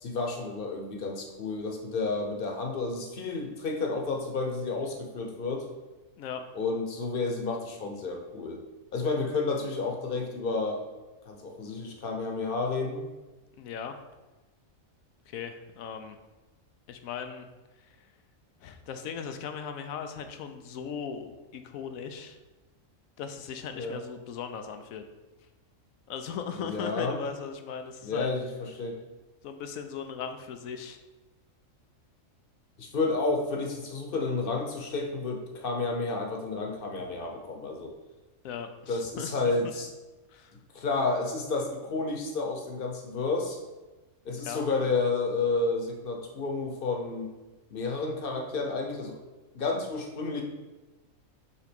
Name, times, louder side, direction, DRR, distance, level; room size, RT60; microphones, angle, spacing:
voice 1, 0.0-5.7 6.5-8.6 8.9-10.8 11.2-13.0 23.7-24.0 26.5-27.2 28.0-29.0 32.8-37.9 38.9-39.9 40.7-43.6 44.2-47.3 47.7-49.2 49.5-50.4, left 3 dB, 45° left, 2 dB, 1.0 m, -31 dB
voice 2, 13.6-14.0 15.3-16.2 16.9-17.5 17.8-18.1 18.6-22.4 23.2-25.1 26.1-28.3 29.4-31.0 38.4-39.5 40.3-40.6 44.3-44.6, left 7 dB, 90° left, 7 dB, 1.1 m, -38 dB
5.7 x 3.8 x 5.2 m, 1.1 s
omnidirectional pair, 1.4 m